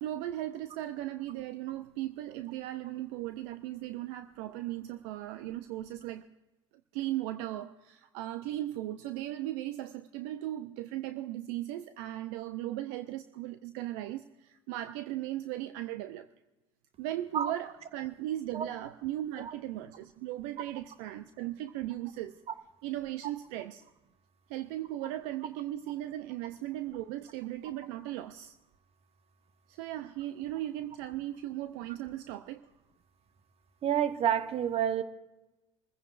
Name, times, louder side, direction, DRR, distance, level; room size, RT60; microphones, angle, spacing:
voice 1, 0.0-6.3 6.9-16.3 17.0-22.4 22.8-23.8 24.5-28.5 29.7-32.6, right 14 dB, 65° right, 11 dB, 0.6 m, -37 dB
voice 2, 33.8-35.0, right 9 dB, 40° right, 11 dB, 1.1 m, -29 dB
27.0 x 15.0 x 2.5 m, 1.0 s
hypercardioid pair, 70°, 15 cm